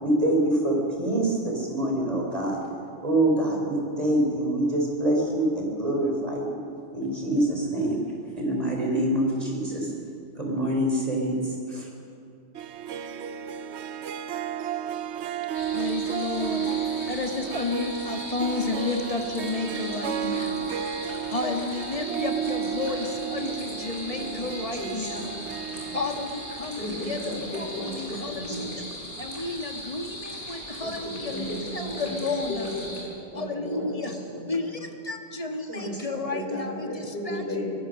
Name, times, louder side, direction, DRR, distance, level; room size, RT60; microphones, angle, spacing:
voice 1, 0.0-2.6 3.0-6.6 6.9-8.0 8.4-9.9 10.4-11.9, right 1 dB, 30° right, 0 dB, 4.4 m, -25 dB
Harp, 12.6-29.3, right 8 dB, 70° right, 0.9 m, -33 dB
sound 1, 15.5-33.0, left 1 dB, 80° left, 4.9 m, -39 dB
voice 2, 15.7-25.4 25.9-28.8 29.2-32.7 33.3-34.2 34.5-37.4, left 3 dB, 30° left, 4 dB, 1.7 m, -32 dB
voice 3, 23.7-26.0 26.8-28.9 30.8-32.1 32.5-32.9 33.3-34.5 35.7-36.0 36.3-37.7, left 1 dB, 60° left, -1 dB, 4.7 m, -35 dB
23.0 x 18.0 x 6.5 m, 2.6 s
omnidirectional pair, 1.2 m